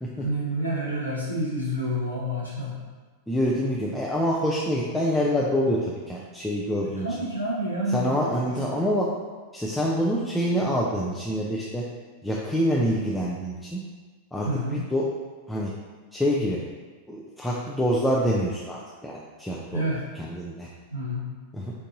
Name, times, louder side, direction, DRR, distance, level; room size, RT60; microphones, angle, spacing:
voice 1, 0.2-2.7 7.0-8.1 8.4-8.6 14.4-14.8 19.7-20.0 20.9-21.3, equal, 85° left, -8 dB, 0.9 m, -28 dB
voice 2, 3.3-7.1 7.9-9.1 9.5-11.8 12.2-13.8 14.3-15.1 15.5-15.7 16.1-16.6 17.1-19.8 20.1-20.7 21.5-21.7, equal, 5° left, -5 dB, 0.4 m, -26 dB
4.5 x 2.6 x 2.6 m, 1.4 s
figure-of-eight pair, 90°, 0 cm